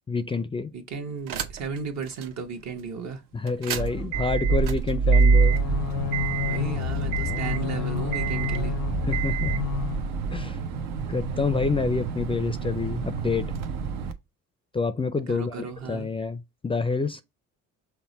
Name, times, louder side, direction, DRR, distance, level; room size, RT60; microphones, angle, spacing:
voice 1, 0.1-0.7 3.3-5.6 9.1-9.5 10.3-10.6 11.1-13.5 14.7-15.6 15.8-17.2, left 4 dB, 15° left, 0.4 m, -27 dB
voice 2, 0.7-3.2 6.4-8.7 15.3-16.1, right 5 dB, 60° right, 1.2 m, -35 dB
sound 1, 1.3-1.8 2.2-2.3 3.5-14.1, right 5 dB, 80° right, 0.8 m, -26 dB
sound 2, 5.2-10.1, left 13 dB, 75° left, 0.5 m, -31 dB
5.9 x 2.1 x 4.0 m
cardioid pair, 95°, 32 cm